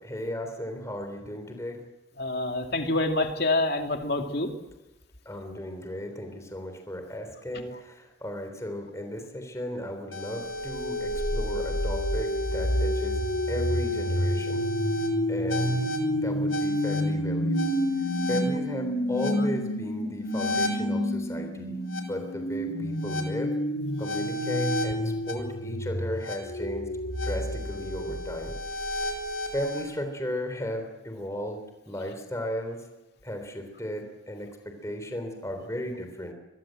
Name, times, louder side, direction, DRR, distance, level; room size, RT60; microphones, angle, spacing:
voice 1, 0.0-1.8 5.3-13.2 13.5-14.6 15.3-15.9 16.1-17.8 18.3-21.7 22.1-23.6 24.0-26.9 27.2-28.6 29.0-29.1 29.5-32.8 33.2-36.3, equal, 15° left, 5 dB, 3.5 m, -35 dB
voice 2, 2.2-4.5, left 2 dB, 55° left, 4 dB, 2.4 m, -26 dB
sound 1, 10.1-29.9, left 1 dB, 85° left, 4.0 m, -29 dB
23.5 x 22.5 x 7.7 m, 1.1 s
head